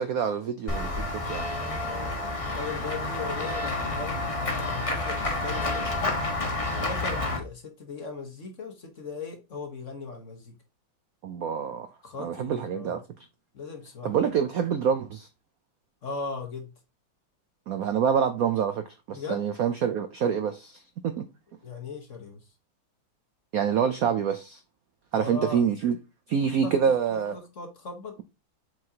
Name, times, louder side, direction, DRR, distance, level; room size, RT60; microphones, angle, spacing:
voice 1, 0.0-1.5 11.2-11.9 12.2-13.0 14.0-15.3 17.7-21.2 23.5-24.6 25.1-26.0 26.3-27.4, right 7 dB, 75° right, 0.8 m, -26 dB
Run / Walk footsteps / Bell, 0.7-7.4, left 2 dB, 20° left, 1.1 m, -29 dB
voice 2, 1.5-2.2 2.5-6.2 6.8-10.5 12.0-12.9 13.5-14.2 16.0-16.7 19.1-19.4 21.6-22.4 25.1-25.7 26.6-26.7 27.1-28.2, left 4 dB, 45° left, 1.4 m, -38 dB
7.6 x 4.7 x 2.8 m
omnidirectional pair, 2.2 m